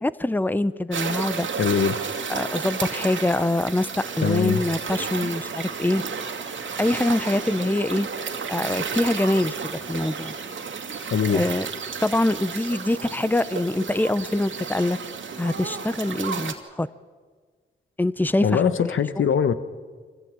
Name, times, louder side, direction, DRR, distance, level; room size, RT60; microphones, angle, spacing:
voice 1, 0.0-1.5 2.3-3.9 4.2-6.0 6.8-8.1 8.5-10.3 11.3-11.7 12.0-15.0 15.4-16.9 18.0-18.9, left 1 dB, 10° left, 16 dB, 0.8 m, -24 dB
sound 1, 0.9-16.5, right 5 dB, 75° right, 2.3 m, -32 dB
voice 2, 1.6-2.0 4.2-4.6 11.1-11.4 18.4-19.5, left 7 dB, 80° left, 12 dB, 1.2 m, -22 dB
24.5 x 16.5 x 8.8 m, 1.5 s
cardioid pair, 60°, 20 cm